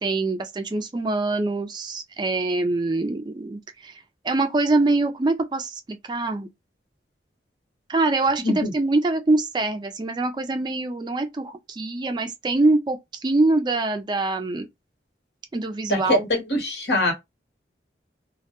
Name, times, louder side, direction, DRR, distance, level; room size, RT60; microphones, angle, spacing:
voice 1, 0.0-6.5 7.9-14.7 15.5-16.2, right 2 dB, 25° right, 0.3 m, -24 dB
voice 2, 15.9-17.1, left 1 dB, 75° left, 1.0 m, -23 dB
2.1 x 2.1 x 2.8 m
head